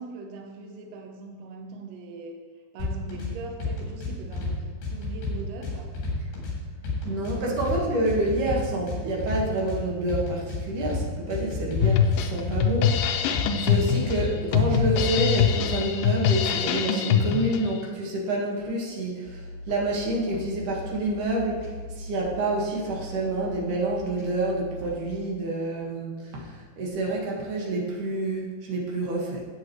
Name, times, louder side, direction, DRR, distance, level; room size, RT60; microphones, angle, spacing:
voice 1, 0.0-2.4 2.7-5.9, right 3 dB, 85° right, 3 dB, 1.5 m, -41 dB
sound 1, 2.8-3.3 3.6-4.5 4.8-6.5 6.8-7.8 8.1-9.8 10.1-11.0 11.3-13.0 13.3-14.3 14.5-15.8, left 3 dB, 70° left, 5.1 m, -31 dB
voice 2, 7.0-21.6 21.9-29.4, right 2 dB, 60° right, -3 dB, 2.9 m, -28 dB
Drum kit, 11.8-17.8, left 8 dB, 90° left, 2.0 m, -23 dB
sound 2, 19.2-25.1, left 1 dB, 5° right, 1.5 m, -40 dB
14.0 x 8.6 x 3.1 m, 1.5 s
omnidirectional pair, 4.6 m